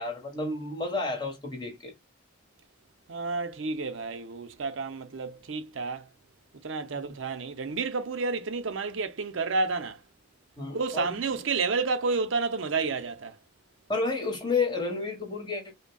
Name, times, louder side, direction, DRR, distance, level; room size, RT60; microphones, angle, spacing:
voice 1, 0.0-1.9 6.9-7.0 10.6-11.2 13.9-15.7, left 3 dB, 25° left, 1.3 m, -31 dB
voice 2, 3.1-6.1 6.6-10.0 10.7-13.3, right 4 dB, 70° right, 0.6 m, -30 dB
5.1 x 2.2 x 2.2 m
head